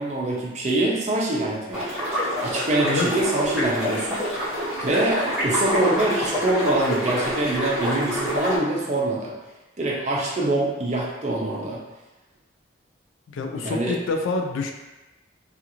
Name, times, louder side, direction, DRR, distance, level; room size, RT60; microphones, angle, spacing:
voice 1, 0.0-1.8 2.4-4.2 4.8-9.3 9.8-11.8 13.6-13.9, right 2 dB, 35° right, -3 dB, 0.5 m, -24 dB
sound 1, 1.7-8.6, equal, 5° right, 0.9 m, -26 dB
voice 2, 13.3-14.7, left 3 dB, 85° left, 4 dB, 0.3 m, -27 dB
2.4 x 2.4 x 2.9 m, 1.1 s
head